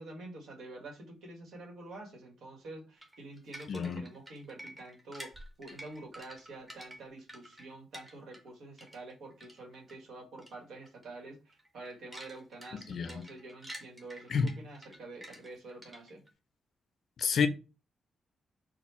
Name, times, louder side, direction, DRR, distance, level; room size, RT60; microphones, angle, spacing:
voice 1, 0.0-5.3 5.6-16.2, right 2 dB, 75° right, 1.5 m, -47 dB
sound 1, 3.0-8.5 8.8-9.9 10.4-10.6 10.8-11.1 11.5-16.3, equal, 10° right, 0.9 m, -50 dB
voice 2, 3.7-4.0 12.9-13.3 14.3-14.5 17.2-17.5, left 6 dB, 50° left, 0.5 m, -29 dB
4.2 x 2.3 x 4.2 m
wide cardioid pair, 170°, 0 cm